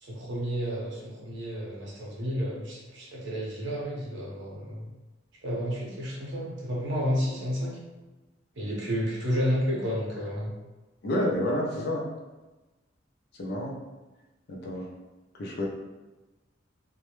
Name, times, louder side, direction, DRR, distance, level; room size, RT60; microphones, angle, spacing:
voice 1, 0.0-4.8 5.4-7.8 8.6-10.5, equal, 65° right, -4 dB, 0.7 m, -31 dB
voice 2, 11.0-12.1 13.4-13.8 14.5-14.9 15.4-15.7, left 1 dB, 55° left, -1 dB, 0.5 m, -29 dB
2.2 x 2.0 x 2.9 m, 1.1 s
head